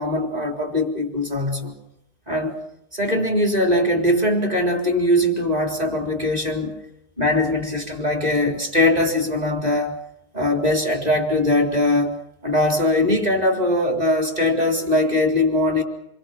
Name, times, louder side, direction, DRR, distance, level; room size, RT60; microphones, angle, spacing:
voice 1, 0.0-1.7 2.3-2.5 2.9-6.8 7.2-10.0 10.3-15.8, left 1 dB, 10° right, 3 dB, 3.4 m, -21 dB
28.0 x 23.5 x 5.9 m, 0.77 s
omnidirectional pair, 4.3 m